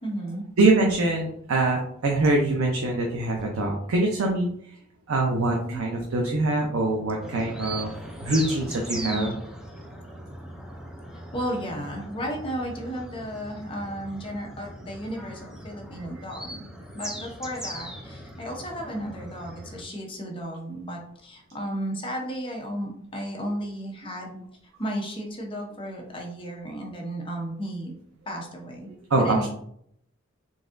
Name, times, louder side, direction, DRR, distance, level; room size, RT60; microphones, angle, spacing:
voice 1, 0.0-0.4 5.6-5.8 8.9-9.3 11.3-16.7 16.9-24.4 24.8-27.9 28.3-28.9 29.2-29.5, equal, 25° left, 0 dB, 0.8 m, -34 dB
voice 2, 0.6-4.5 5.1-7.9 8.2-9.3 29.1-29.5, right 2 dB, 90° right, 0 dB, 0.6 m, -24 dB
sound 1, 7.2-19.8, right 1 dB, 5° right, 0.5 m, -39 dB
3.9 x 3.5 x 2.5 m, 0.69 s
head